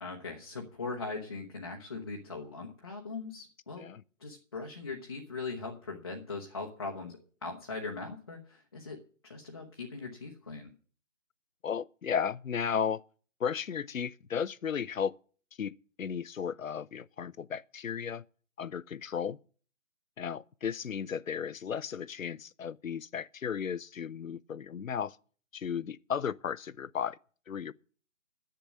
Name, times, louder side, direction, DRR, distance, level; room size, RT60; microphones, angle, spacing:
voice 1, 0.0-3.9 4.2-9.0 9.3-10.7, left 3 dB, 20° left, 0.8 m, -40 dB
voice 2, 11.6-13.0 13.4-15.1 15.6-18.2 18.6-19.4 20.2-25.2 25.5-27.2 27.5-27.7, left 7 dB, 75° left, 0.6 m, -34 dB
10.5 x 7.9 x 7.3 m
figure-of-eight pair, 160°, 40 cm